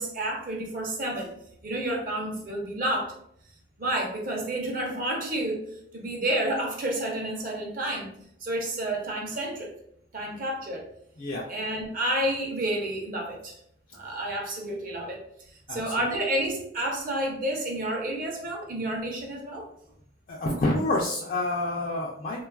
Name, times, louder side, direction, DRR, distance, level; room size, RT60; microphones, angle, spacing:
voice 1, 0.0-1.3 1.6-3.1 3.8-5.7 5.9-8.1 8.4-9.7 10.1-10.8 11.5-13.6 13.9-15.2 15.5-19.7, right 1 dB, 45° right, 0 dB, 0.6 m, -30 dB
voice 2, 20.3-22.4, left 2 dB, 45° left, -3 dB, 0.3 m, -28 dB
3.1 x 2.2 x 2.2 m, 0.71 s
head